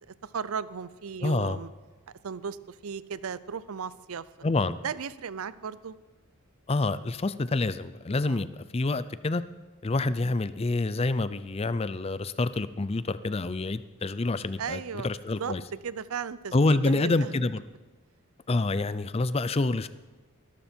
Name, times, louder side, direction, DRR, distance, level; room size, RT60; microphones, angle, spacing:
voice 1, 0.1-1.7 2.2-4.3 4.8-6.0 8.3-8.4 14.6-15.1 15.4-15.5 15.8-17.3 18.6-18.7, right 6 dB, 80° right, 17 dB, 0.6 m, -36 dB
voice 2, 1.2-1.6 4.4-4.8 6.7-9.4 9.8-15.6 16.5-17.6 18.5-19.9, left 2 dB, 25° left, 15 dB, 0.5 m, -27 dB
19.5 x 12.5 x 4.5 m, 1.2 s
head